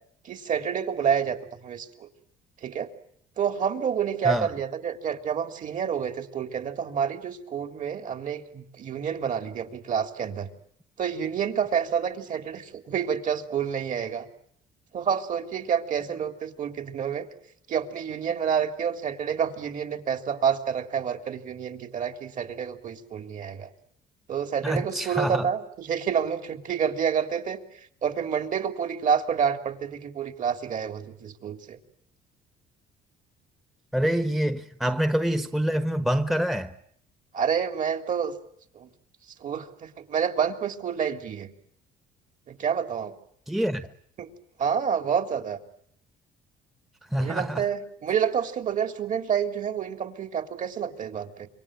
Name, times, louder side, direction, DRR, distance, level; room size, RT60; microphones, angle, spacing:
voice 1, 0.2-1.4 1.6-2.1 2.6-2.9 3.4-10.5 11.0-14.3 14.9-17.3 17.7-23.7 24.3-27.6 28.0-31.8 37.3-38.3 38.8-38.9 39.4-41.5 42.5-43.1 44.2-44.3 44.6-45.6 47.2-51.5, right 7 dB, 50° right, 3.5 m, -28 dB
voice 2, 24.6-25.5 33.9-36.7 43.5-43.9 47.1-47.7, right 1 dB, ahead, 1.1 m, -26 dB
27.0 x 24.5 x 9.0 m
cardioid pair, 110°, 17 cm